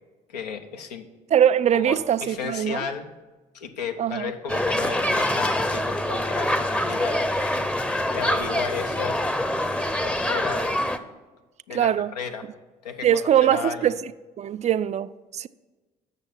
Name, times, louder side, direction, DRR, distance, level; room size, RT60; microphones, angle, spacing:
voice 1, 0.3-1.1 1.7-3.1 3.5-7.3 8.1-9.2 10.0-10.8 11.7-12.5 12.8-13.9, left 6 dB, 85° left, 0.7 m, -33 dB
voice 2, 1.3-2.8 4.0-4.3 11.7-12.1 13.0-14.0 14.4-15.5, right 10 dB, 35° right, 0.4 m, -22 dB
sound 1, 4.5-11.0, left 1 dB, 5° left, 0.6 m, -25 dB
8.2 x 6.7 x 5.9 m
hypercardioid pair, 60°, 20 cm